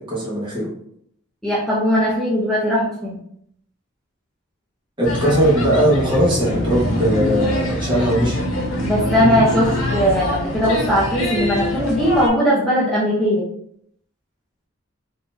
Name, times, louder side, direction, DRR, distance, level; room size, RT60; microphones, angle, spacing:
voice 1, 0.1-0.7 5.0-8.4, right 1 dB, 25° right, -5 dB, 1.0 m, -19 dB
voice 2, 1.4-3.2 8.8-9.7 9.9-13.4, equal, ahead, -8 dB, 0.6 m, -19 dB
sound 1, 5.0-12.3, left 1 dB, 85° left, 1.5 m, -23 dB
3.8 x 2.7 x 2.5 m, 0.70 s
head